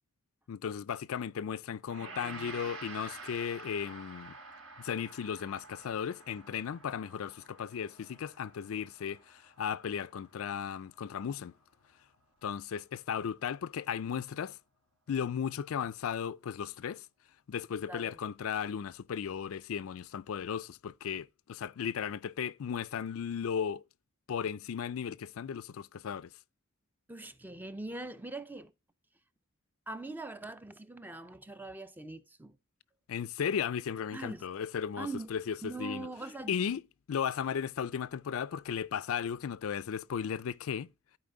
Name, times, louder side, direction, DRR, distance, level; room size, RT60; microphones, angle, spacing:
voice 1, 0.5-4.3 4.8-11.5 12.4-14.6 15.1-17.1 17.5-23.8 24.3-26.3 33.1-36.1 36.5-36.8 37.1-40.9, left 7 dB, 70° left, 0.4 m, -35 dB
Gong, 1.9-11.1, right 3 dB, 75° right, 3.7 m, -49 dB
voice 2, 2.0-2.7 17.9-18.2 27.1-28.7 29.9-32.6 34.1-34.5 35.0-36.6, right 2 dB, 10° right, 0.5 m, -43 dB
13.0 x 4.7 x 3.8 m
head